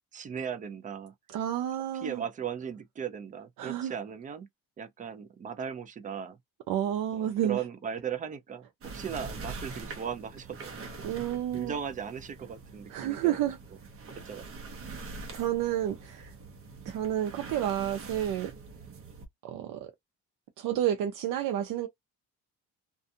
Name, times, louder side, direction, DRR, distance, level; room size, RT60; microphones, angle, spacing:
voice 1, 0.1-1.1 2.0-4.5 4.8-6.4 7.1-10.7 11.5-13.5 14.2-14.4, right 7 dB, 25° right, 0.4 m, -37 dB
voice 2, 1.3-2.2 3.6-3.9 6.7-7.6 11.0-11.8 12.9-13.6 14.8-16.3 16.9-18.5 19.4-19.9 20.6-21.9, right 11 dB, 75° right, 0.6 m, -30 dB
sound 1, 8.8-19.3, right 4 dB, 45° right, 0.8 m, -44 dB
2.5 x 2.3 x 2.6 m
cardioid pair, 125°, 33 cm